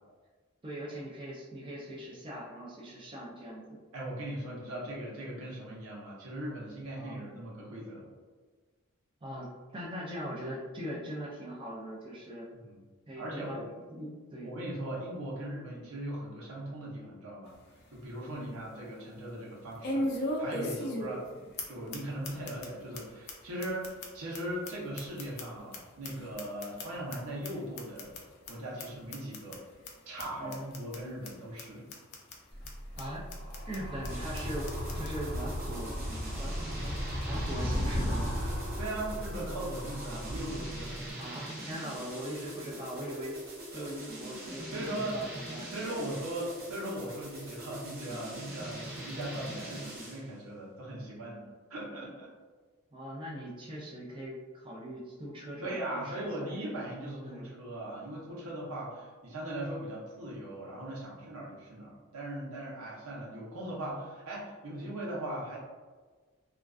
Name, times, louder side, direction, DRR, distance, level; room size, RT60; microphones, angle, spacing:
voice 1, 0.6-3.8 7.0-7.2 9.2-12.5 13.1-14.5 18.3-18.6 30.4-30.7 33.0-33.2 33.7-35.9 36.3-37.0 37.2-38.4 41.2-43.4 43.7-46.3 52.9-56.6 57.2-57.5, equal, 25° right, -5 dB, 0.3 m, -41 dB
voice 2, 3.9-8.1 12.6-12.8 13.2-13.7 14.4-17.6 17.9-28.2 28.5-29.6 30.1-31.9 38.8-41.0 43.7-43.9 44.7-45.3 45.7-51.4 51.7-52.3 55.6-65.6, right 1 dB, 85° right, -5 dB, 0.8 m, -39 dB
sound 1, 17.5-17.6 18.0-18.1 19.8-21.3 21.6-21.7 21.9-22.0 22.2-22.7 22.9-23.0 23.3-23.4 23.6-25.8 26.0-27.2 27.4-27.5 27.8-28.2 28.5-28.6 28.8-28.9 29.1-29.6 29.9-30.0 30.2-30.3 30.5-31.0 31.2-31.3 31.6-31.7 31.9-32.4 32.7-32.8 33.0-33.1 33.3-33.8 34.0-34.1 34.4-34.5 34.7-35.1, left 1 dB, 45° left, 0.4 m, -36 dB
Animal, 32.5-41.1, equal, 25° left, 0.7 m, -36 dB
sound 2, 34.1-50.3, right 1 dB, 45° right, 0.7 m, -43 dB
2.4 x 2.3 x 2.3 m, 1.4 s
head